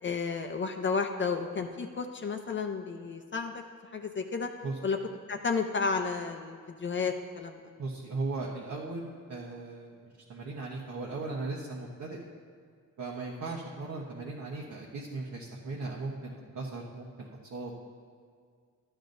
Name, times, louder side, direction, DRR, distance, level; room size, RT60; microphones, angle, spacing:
voice 1, 0.0-3.6 3.9-4.5 4.8-5.0 5.3-7.6, left 5 dB, 35° left, 4 dB, 0.6 m, -32 dB
voice 2, 7.8-12.2 13.0-17.7, right 3 dB, 60° right, -3 dB, 1.1 m, -38 dB
13.5 x 10.0 x 2.6 m, 2.1 s
wide cardioid pair, 135°, 32 cm